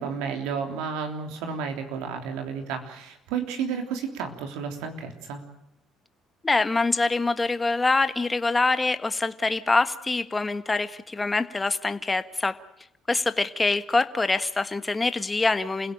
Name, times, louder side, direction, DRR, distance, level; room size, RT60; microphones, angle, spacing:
voice 1, 0.0-5.4, right 6 dB, 80° right, 5 dB, 3.4 m, -32 dB
voice 2, 6.4-12.5 13.1-15.9, left 3 dB, 20° left, 11 dB, 1.5 m, -25 dB
28.5 x 16.5 x 9.1 m, 0.80 s
supercardioid pair, 65°, 0 cm